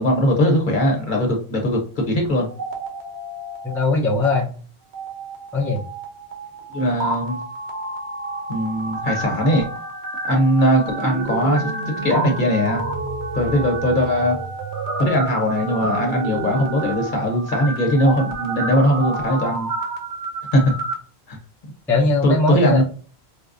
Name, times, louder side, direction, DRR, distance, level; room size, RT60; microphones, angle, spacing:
voice 1, 0.0-2.5 6.7-7.4 8.5-9.7 10.2-12.9 13.3-14.4 15.0-19.7 20.5-20.8 21.3-21.4 22.2-22.8, equal, 50° left, 1 dB, 1.1 m, -20 dB
sound 1, 2.4-3.8 4.1-4.4 4.9-20.9, right 3 dB, 90° right, 1.1 m, -29 dB
voice 2, 3.6-4.5 5.5-5.8 21.9-22.8, left 2 dB, 5° left, -2 dB, 0.6 m, -20 dB
4.7 x 2.2 x 2.5 m, 0.40 s
omnidirectional pair, 1.1 m